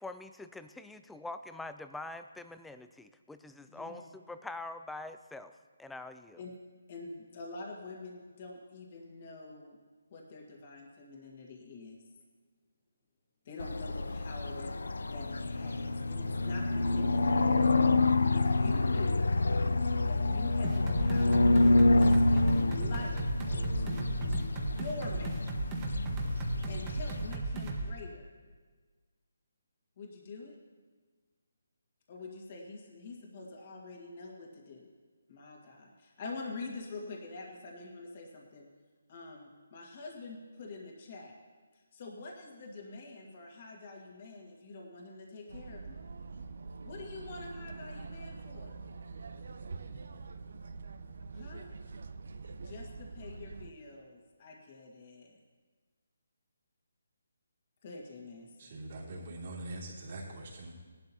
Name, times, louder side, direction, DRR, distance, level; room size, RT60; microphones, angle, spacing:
voice 1, 0.0-6.4, left 2 dB, 5° left, 10 dB, 0.3 m, -44 dB
voice 2, 3.7-4.1 6.4-6.5 6.9-9.8 10.1-12.0 13.5-14.7 15.1-17.6 18.3-19.2 20.0-21.6 22.0-23.2 23.5-24.1 24.5-25.5 26.7-28.3 30.0-30.6 32.1-34.9 35.3-38.7 39.1-41.3 41.7-46.0 46.8-48.8 51.3-51.7 52.6-55.4 57.8-58.7, left 3 dB, 35° left, 0 dB, 1.8 m, -45 dB
sound 1, 13.6-27.4, left 2 dB, 85° left, 0.5 m, -28 dB
sound 2, 20.6-27.9, right 2 dB, 20° right, 1.3 m, -35 dB
sound 3, 45.5-53.7, right 4 dB, 65° right, 0.7 m, -45 dB
voice 3, 58.6-60.7, right 1 dB, 45° right, -4 dB, 3.1 m, -43 dB
16.5 x 11.5 x 2.9 m, 1.4 s
hypercardioid pair, 165°, 0 cm